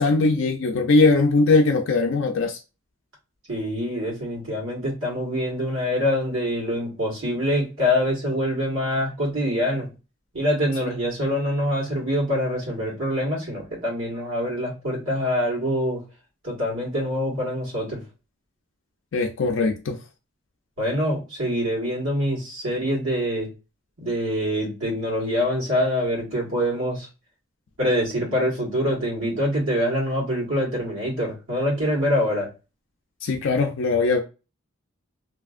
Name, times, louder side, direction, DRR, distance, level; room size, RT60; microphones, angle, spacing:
voice 1, 0.0-2.6 19.1-20.0 33.2-34.2, left 3 dB, 65° left, 0.4 m, -20 dB
voice 2, 3.5-9.9 10.3-16.0 16.4-18.0 20.8-23.5 24.0-27.1 27.8-32.5, equal, 85° right, 1.6 m, -25 dB
2.7 x 2.6 x 2.4 m
head